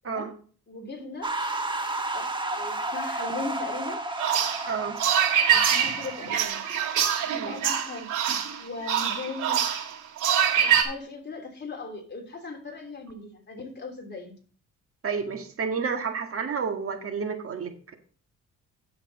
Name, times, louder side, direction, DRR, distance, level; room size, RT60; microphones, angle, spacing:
voice 1, 0.7-1.3 2.1-2.2 2.5-4.0 5.5-6.6 7.3-8.1 8.6-9.6 10.5-14.4, left 3 dB, 35° left, 2 dB, 3.1 m, -38 dB
sound 1, 1.2-6.4, right 2 dB, 15° right, 1.4 m, -32 dB
sound 2, 4.2-10.8, right 9 dB, 85° right, 2.2 m, -24 dB
voice 2, 4.7-5.0 7.3-7.5 15.0-17.9, right 5 dB, 50° right, 5 dB, 1.8 m, -30 dB
10.5 x 7.8 x 4.0 m, 0.42 s
cardioid pair, 90°, 30 cm